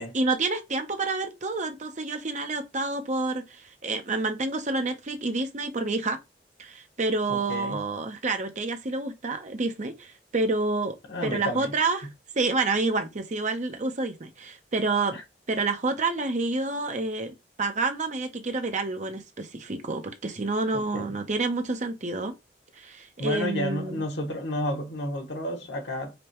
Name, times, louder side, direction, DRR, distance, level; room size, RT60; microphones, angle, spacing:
voice 1, 0.0-6.2 6.6-10.9 11.2-12.1 12.3-15.2 15.5-17.3 17.6-22.4 22.8-24.0, right 3 dB, 45° right, 0.7 m, -28 dB
voice 2, 7.3-7.8 11.1-11.7 15.1-15.2 20.7-21.1 23.2-26.1, left 1 dB, 80° left, 1.1 m, -31 dB
5.1 x 2.2 x 2.9 m
head